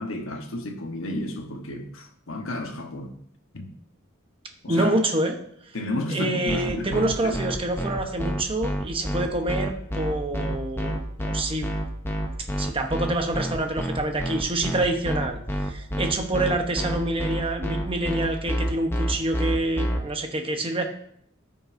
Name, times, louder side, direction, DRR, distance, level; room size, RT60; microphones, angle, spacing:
voice 1, 0.0-3.1 3.5-3.7 4.6-4.9 5.7-7.4, left 1 dB, 80° left, 1.1 m, -32 dB
voice 2, 4.7-5.4 6.1-11.7 12.6-20.8, right 2 dB, 25° right, 1.0 m, -27 dB
sound 1, 6.5-20.0, equal, 10° left, 0.8 m, -28 dB
14.0 x 5.4 x 2.7 m
head